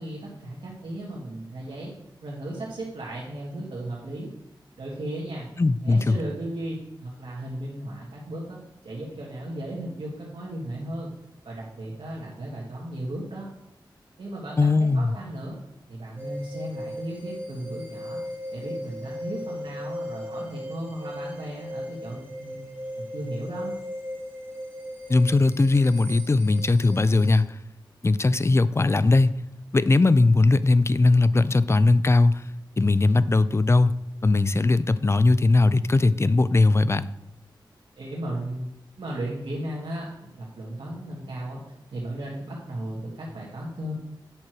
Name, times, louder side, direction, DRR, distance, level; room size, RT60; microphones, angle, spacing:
voice 1, 0.0-1.9 2.2-4.3 4.8-5.5 5.8-11.1 11.4-13.5 14.2-15.6 15.9-22.7 22.9-23.7 38.0-38.7 39.0-44.0, right 1 dB, 90° right, -5 dB, 1.7 m, -35 dB
voice 2, 5.6-6.2 14.6-15.1 25.1-27.6 28.0-29.4 29.7-32.5 32.8-33.9 34.2-37.1, left 3 dB, 30° left, 15 dB, 0.4 m, -19 dB
sound 1, 16.2-27.4, equal, 25° right, 1.7 m, -37 dB
8.7 x 6.2 x 4.5 m, 0.83 s
wide cardioid pair, 70°, 9 cm